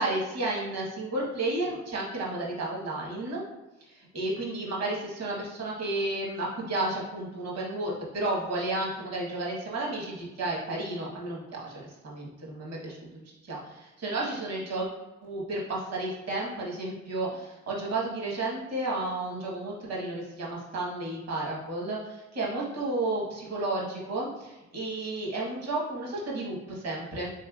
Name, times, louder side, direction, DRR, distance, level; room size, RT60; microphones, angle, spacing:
voice 1, 0.0-3.4 3.8-14.9 15.2-27.3, right 2 dB, 60° right, -3 dB, 1.2 m, -32 dB
3.4 x 3.1 x 2.3 m, 1.1 s
cardioid pair, 90°, 30 cm